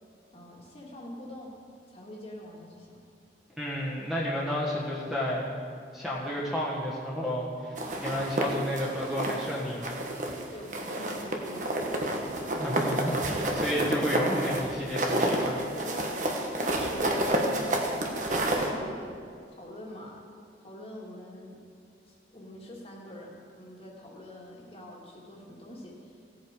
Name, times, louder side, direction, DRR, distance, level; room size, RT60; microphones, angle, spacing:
voice 1, 0.3-1.6 1.9-3.0 10.5-11.9 12.2-12.5 15.7-16.1 16.4-20.2 20.6-21.6 22.0-26.2, left 1 dB, 35° left, -2 dB, 2.0 m, -45 dB
voice 2, 3.6-5.5 5.9-10.0 12.5-15.6, equal, ahead, -5 dB, 1.6 m, -31 dB
sound 1, 7.8-9.5 9.8-10.4 10.7-18.7, right 1 dB, 45° right, 1.4 m, -29 dB
16.5 x 8.1 x 4.9 m, 2.3 s
head